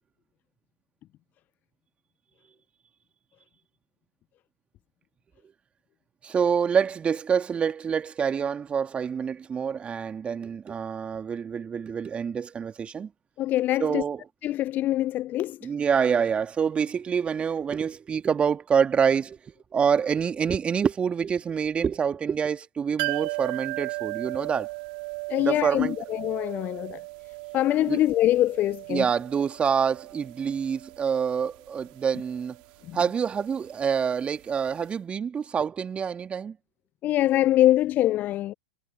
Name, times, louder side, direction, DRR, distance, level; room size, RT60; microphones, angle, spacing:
voice 1, 6.2-13.1 13.8-14.2 15.6-24.7 25.4-26.0 27.8-28.0 28.9-32.6 32.9-36.6, right 7 dB, 20° right, 2.6 m, -26 dB
voice 2, 13.4-14.0 14.4-15.6 25.3-27.0 27.5-29.0 32.9-33.0 37.0-38.5, left 14 dB, 30° left, 0.5 m, -24 dB
sound 1, 23.0-34.6 34.9-35.0, right 28 dB, 45° right, 2.0 m, -37 dB
figure-of-eight pair, 105°, 6 cm